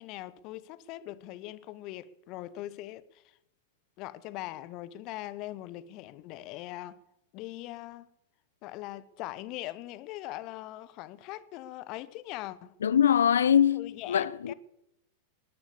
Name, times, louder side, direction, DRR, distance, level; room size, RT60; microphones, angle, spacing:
voice 1, 0.0-3.2 4.0-7.0 7.3-8.1 8.6-12.7 13.7-14.5, left 15 dB, 40° left, 0.9 m, -41 dB
voice 2, 12.8-14.5, left 9 dB, 65° left, 0.5 m, -23 dB
20.0 x 10.5 x 6.8 m
figure-of-eight pair, 90°, 0 cm